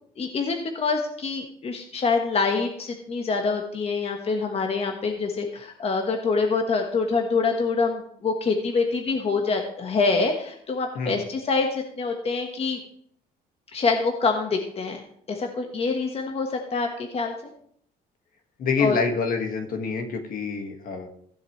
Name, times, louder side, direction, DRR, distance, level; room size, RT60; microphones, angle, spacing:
voice 1, 0.2-12.8 13.7-15.0 15.3-16.9 17.1-17.5 18.8-19.0, left 4 dB, 35° left, 3 dB, 1.4 m, -25 dB
voice 2, 18.6-21.1, left 5 dB, 55° left, 5 dB, 1.7 m, -26 dB
15.5 x 7.3 x 3.2 m, 0.63 s
cardioid pair, 110°, 17 cm